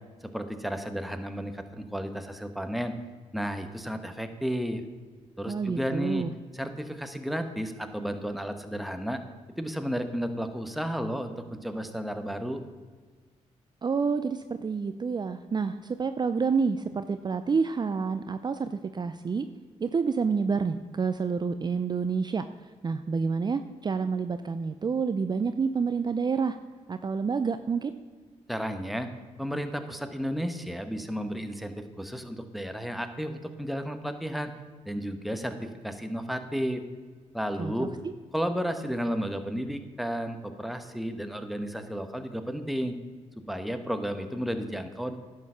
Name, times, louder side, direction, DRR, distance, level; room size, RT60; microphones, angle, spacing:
voice 1, 0.3-3.0 3.3-4.8 5.4-6.2 6.5-9.2 9.6-12.6 28.5-29.1 29.4-34.5 34.8-36.8 37.3-37.9 38.3-43.0 43.5-45.2, equal, ahead, 7 dB, 1.1 m, -32 dB
voice 2, 5.5-6.3 13.8-19.5 19.8-26.6 26.9-27.9 37.6-37.9, right 5 dB, 35° right, 10 dB, 0.4 m, -28 dB
11.0 x 6.6 x 5.6 m, 1.5 s
cardioid pair, 60°, 13 cm